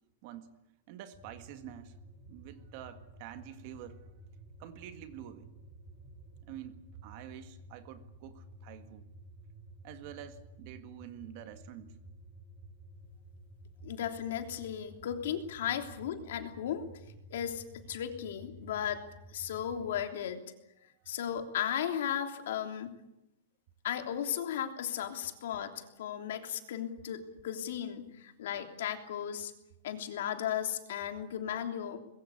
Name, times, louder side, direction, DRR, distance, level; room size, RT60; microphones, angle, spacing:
voice 1, 0.9-2.0 2.3-4.0 4.6-5.5 6.4-9.1 9.8-12.0, right 11 dB, 35° right, 9 dB, 1.8 m, -47 dB
sound 1, 1.1-20.0, right 1 dB, 10° right, 4.1 m, -53 dB
voice 2, 13.8-16.8 17.3-19.0 19.3-20.4 21.1-23.0 23.8-29.5 29.8-32.0, left 9 dB, 60° left, 5 dB, 3.2 m, -35 dB
23.5 x 22.0 x 8.4 m, 0.89 s
supercardioid pair, 180°, 0 cm